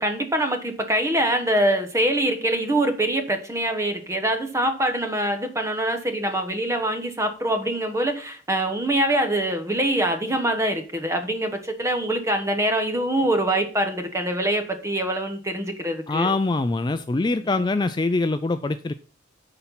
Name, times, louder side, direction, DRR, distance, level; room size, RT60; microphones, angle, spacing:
voice 1, 0.0-16.3, right 1 dB, 15° right, 6 dB, 1.2 m, -24 dB
voice 2, 16.1-18.9, left 3 dB, 25° left, 10 dB, 0.3 m, -23 dB
10.0 x 4.4 x 5.6 m, 0.39 s
head